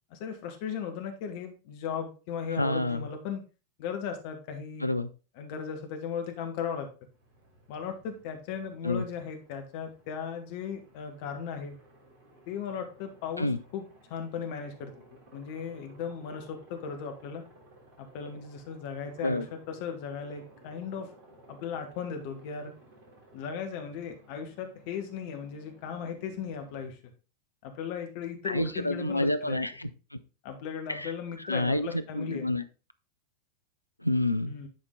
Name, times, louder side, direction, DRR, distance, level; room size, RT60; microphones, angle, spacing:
voice 1, 0.1-3.4 3.8-4.9 5.4-6.9 7.7-11.8 12.5-13.8 14.1-14.9 15.3-17.4 18.0-21.1 21.5-22.7 23.3-27.0 27.6-29.6 30.4-32.5 34.4-34.7, left 7 dB, 45° left, 5 dB, 1.6 m, -37 dB
voice 2, 2.5-3.0 4.8-5.1 8.8-9.0 13.4-13.6 19.2-19.5 28.4-30.2 30.9-31.1 31.4-32.6 34.0-34.6, left 1 dB, 85° left, 11 dB, 0.5 m, -29 dB
Aircraft, 7.0-26.9, right 1 dB, 40° right, 3.2 m, -57 dB
10.5 x 4.4 x 3.8 m, 0.34 s
figure-of-eight pair, 90°, 0 cm